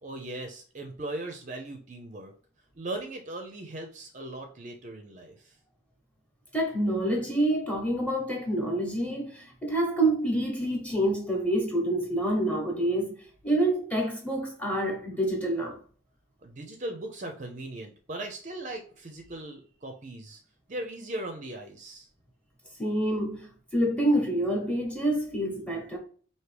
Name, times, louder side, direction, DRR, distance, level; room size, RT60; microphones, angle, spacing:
voice 1, 0.0-2.3 2.7-5.6 16.4-20.4 20.7-22.1, right 1 dB, 35° right, 0.5 m, -38 dB
voice 2, 6.5-13.1 13.4-15.8 22.8-26.0, right 1 dB, 5° left, 1.0 m, -27 dB
4.6 x 2.7 x 3.3 m
head